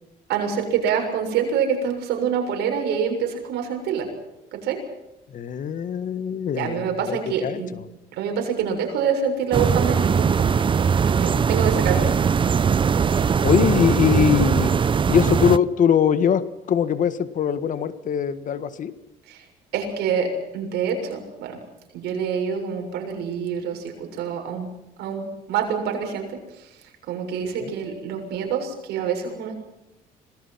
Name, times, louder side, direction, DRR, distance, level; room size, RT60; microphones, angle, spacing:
voice 1, 0.3-4.1 4.5-4.8 6.6-7.7 8.2-10.5 11.0-12.1 19.3-19.4 19.7-21.6 21.9-24.7 25.0-26.7 27.1-29.6, right 7 dB, 80° right, 3 dB, 6.9 m, -26 dB
voice 2, 5.3-7.6 13.4-14.7 15.1-18.9 27.6-27.7, left 8 dB, 50° left, 12 dB, 1.7 m, -22 dB
sound 1, 9.5-15.6, right 6 dB, 30° right, 0.7 m, -20 dB
26.5 x 20.0 x 5.8 m, 0.91 s
cardioid pair, 110°, 17 cm